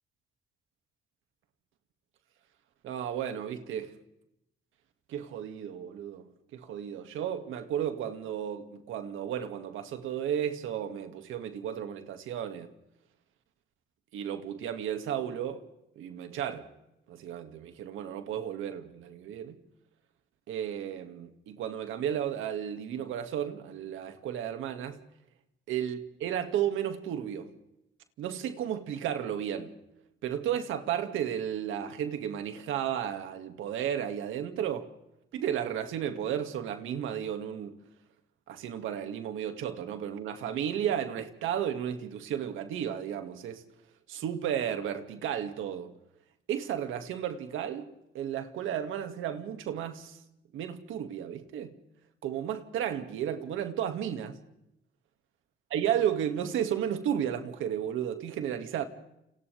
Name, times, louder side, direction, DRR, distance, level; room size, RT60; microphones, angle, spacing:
voice 1, 2.8-3.9 5.1-12.7 14.1-15.7 16.0-16.7 17.1-19.6 20.5-25.0 25.7-27.5 28.2-29.7 30.2-34.9 35.3-37.8 38.5-43.6 44.1-45.9 46.5-50.2 50.5-51.7 52.2-54.4 55.7-58.8, right 9 dB, 90° right, 2.3 m, -33 dB
29.5 x 28.0 x 3.5 m
cardioid pair, 90°, 20 cm